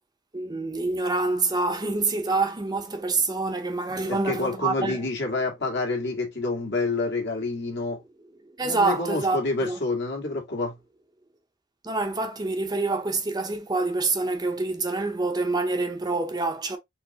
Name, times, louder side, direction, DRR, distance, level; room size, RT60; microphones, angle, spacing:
voice 1, 0.3-5.1 8.4-9.8 11.8-16.8, right 3 dB, 20° right, 0.6 m, -26 dB
voice 2, 4.1-8.0 8.6-10.7, left 3 dB, 60° left, 1.7 m, -28 dB
4.3 x 3.2 x 2.7 m
head